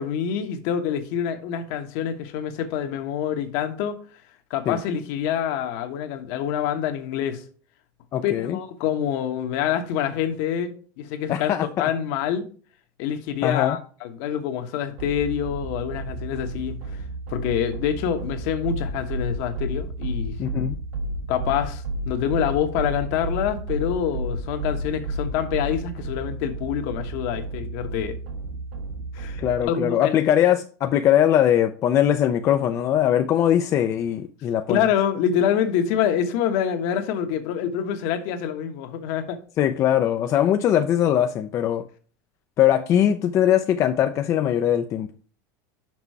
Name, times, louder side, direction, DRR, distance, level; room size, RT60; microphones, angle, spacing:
voice 1, 0.0-4.0 4.5-7.4 8.2-11.5 11.8-12.5 13.0-16.8 17.3-20.4 21.3-28.2 29.1-30.2 34.7-39.4, left 9 dB, 60° left, 1.2 m, -26 dB
voice 2, 8.1-8.6 11.3-11.8 13.4-13.8 20.4-20.8 29.4-34.8 39.6-41.8 42.6-45.1, left 10 dB, 30° left, 0.4 m, -21 dB
sound 1, 15.0-29.6, right 1 dB, 75° right, 3.1 m, -32 dB
6.0 x 5.4 x 4.6 m
supercardioid pair, 155°, 10 cm